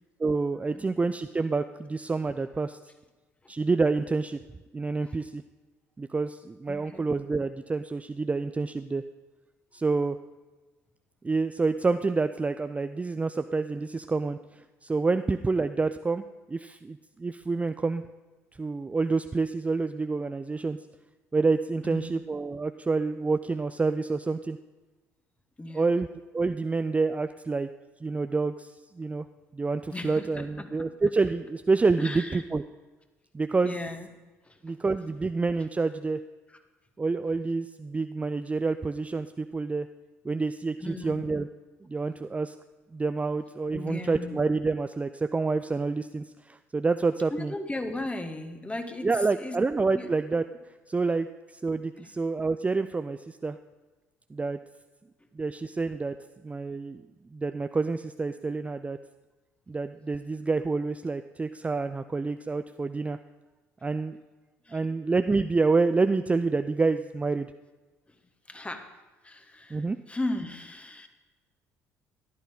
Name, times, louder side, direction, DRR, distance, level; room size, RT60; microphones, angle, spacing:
voice 1, 0.2-2.8 3.5-4.4 4.7-5.4 6.0-9.0 9.7-10.2 11.2-18.0 18.6-20.8 21.3-24.6 25.7-26.1 26.3-27.7 28.0-29.3 29.5-32.6 33.3-33.7 34.6-36.2 37.0-39.9 40.2-41.5 41.9-42.5 42.9-47.5 49.0-50.4 50.9-53.6 54.3-54.6 55.3-56.2 56.4-57.0 57.3-59.0 59.7-63.2 63.8-64.2 64.7-67.5 69.7-70.0, right 3 dB, 15° right, 10 dB, 0.4 m, -28 dB
voice 2, 6.7-7.0 21.8-22.2 25.6-25.9 29.9-30.9 32.0-32.4 33.6-34.1 34.4-34.8 36.5-36.6 40.8-41.3 43.7-44.4 47.3-49.1 49.3-49.6 49.9-50.1 52.0-52.1 64.6-64.8 68.1-68.2 68.5-68.9 69.2-71.1, left 2 dB, 15° left, 7 dB, 1.4 m, -36 dB
14.5 x 11.5 x 3.8 m, 1.2 s
figure-of-eight pair, 55°, 8 cm